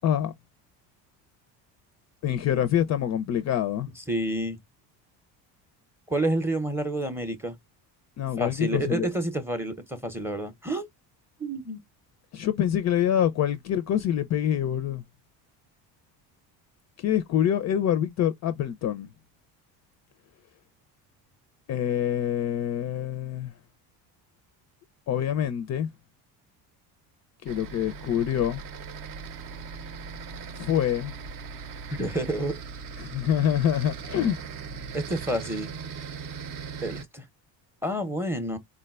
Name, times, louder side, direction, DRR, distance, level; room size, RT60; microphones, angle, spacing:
voice 1, 0.0-0.3 2.2-3.9 8.2-9.1 12.3-15.0 17.0-19.1 21.7-23.5 25.1-25.9 27.4-28.6 30.6-31.1 33.0-34.4, left 10 dB, 40° left, 0.4 m, -26 dB
voice 2, 4.1-4.6 6.1-7.6 8.4-10.9 11.4-11.8 32.0-32.6 34.9-35.7 36.8-37.2 37.8-38.6, right 1 dB, 5° right, 0.6 m, -29 dB
sound 1, 27.4-37.0, right 5 dB, 50° right, 0.6 m, -39 dB
3.7 x 2.1 x 2.3 m
supercardioid pair, 95°, 44 cm